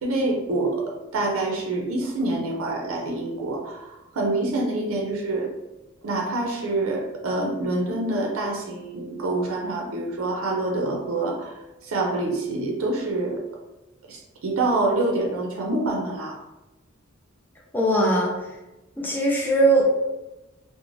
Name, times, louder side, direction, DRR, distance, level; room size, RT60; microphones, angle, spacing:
voice 1, 0.0-5.5 6.0-11.6 11.8-13.4 14.1-16.4, right 2 dB, 80° right, 0 dB, 0.5 m, -26 dB
voice 2, 17.7-18.3 19.0-19.8, right 2 dB, 10° left, -2 dB, 0.4 m, -20 dB
2.4 x 2.0 x 3.1 m, 1.0 s
head